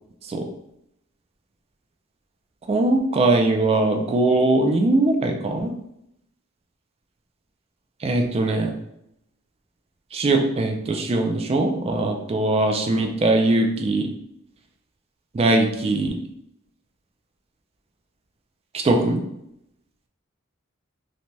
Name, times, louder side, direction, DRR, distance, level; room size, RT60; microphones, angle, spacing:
voice 1, 2.7-5.7 8.0-8.7 10.1-14.1 15.3-16.1 18.7-19.2, right 2 dB, 30° right, 3 dB, 0.3 m, -21 dB
2.7 x 2.2 x 3.1 m, 0.79 s
head